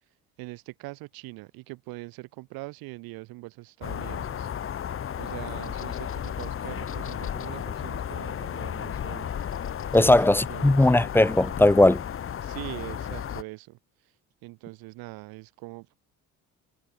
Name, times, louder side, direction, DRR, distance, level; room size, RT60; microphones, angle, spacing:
voice 1, 0.4-4.5 5.2-9.3 10.0-10.2 10.5-10.9 12.4-13.8 14.4-15.9, right 23 dB, 85° right, 7.0 m, -42 dB
sound 1, 3.8-13.4, left 9 dB, 40° left, 1.3 m, -34 dB
voice 2, 9.9-12.0, left 1 dB, 5° left, 0.5 m, -18 dB
cardioid pair, 110°, 35 cm